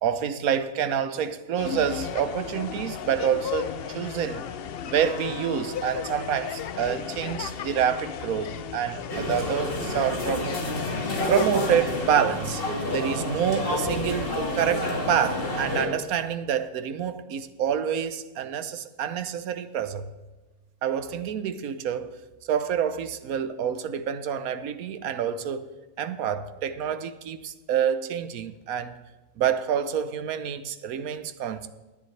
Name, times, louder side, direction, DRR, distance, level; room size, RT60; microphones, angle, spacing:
voice 1, 0.0-4.5 4.8-10.6 11.3-20.1 20.8-22.1 22.5-25.7 26.0-29.0 29.4-31.7, right 8 dB, 70° right, 1.2 m, -27 dB
sound 1, 1.6-12.1, left 8 dB, 65° left, 0.6 m, -35 dB
sound 2, 9.1-15.9, left 1 dB, 40° left, 2.0 m, -29 dB
17.5 x 10.5 x 3.2 m
omnidirectional pair, 1.6 m